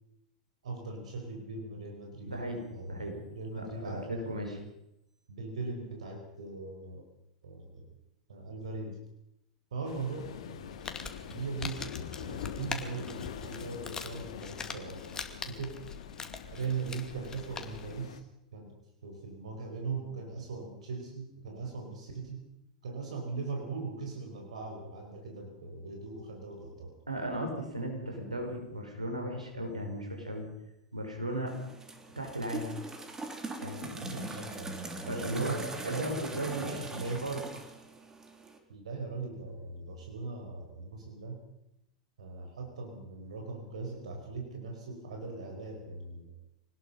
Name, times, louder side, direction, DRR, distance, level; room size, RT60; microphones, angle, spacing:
voice 1, 0.6-2.4 2.7-4.6 5.3-7.0 7.4-7.9 8.3-9.0 9.7-10.8 11.3-11.9 12.2-15.8 16.5-18.2 18.5-18.7 19.0-22.5 22.8-27.0 34.0-37.3 38.7-41.4 42.2-46.3, right 4 dB, 70° right, 3 dB, 4.8 m, -40 dB
voice 2, 2.3-3.1 3.5-4.6 27.1-30.5 30.9-31.6 32.2-32.7 33.6-34.4 35.1-37.5, right 1 dB, 90° right, 2 dB, 5.6 m, -36 dB
Waves surf, 9.8-18.2, left 8 dB, 60° left, 2.2 m, -44 dB
Crumpling crinkling, 10.6-18.0, left 5 dB, 15° left, 2.5 m, -43 dB
sound 1, 31.5-38.6, right 2 dB, 15° right, 3.4 m, -42 dB
24.5 x 19.5 x 5.7 m, 0.84 s
figure-of-eight pair, 95°, 4 cm